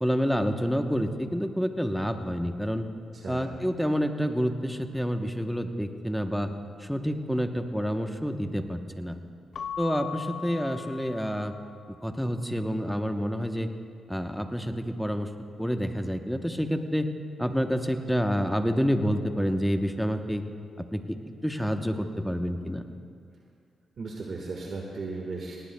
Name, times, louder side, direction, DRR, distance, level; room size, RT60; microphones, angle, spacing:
voice 1, 0.0-2.9 3.3-6.5 6.8-9.2 9.8-11.5 12.0-13.7 14.1-15.3 15.6-17.1 17.4-20.4 20.8-21.2 21.4-22.8, equal, ahead, 6 dB, 0.9 m, -28 dB
voice 2, 3.1-3.6 24.0-25.6, right 3 dB, 60° right, -1 dB, 1.5 m, -36 dB
Keyboard (musical) / Bell, 9.5-12.0, left 8 dB, 60° left, 0.3 m, -38 dB
19.0 x 18.0 x 2.2 m, 2.3 s
cardioid pair, 80°, 0 cm